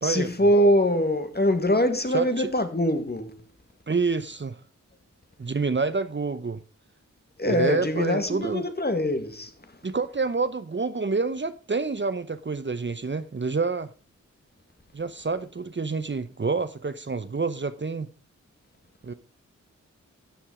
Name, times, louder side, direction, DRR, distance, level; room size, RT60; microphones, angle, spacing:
voice 1, 0.0-3.3 7.4-9.5, equal, 30° left, 2.1 m, -23 dB
voice 2, 2.1-2.5 3.9-4.6 5.4-6.6 7.4-8.7 9.8-13.9 14.9-18.1 19.0-19.1, right 4 dB, 40° right, 0.8 m, -28 dB
13.5 x 7.2 x 4.9 m
cardioid pair, 40°, 31 cm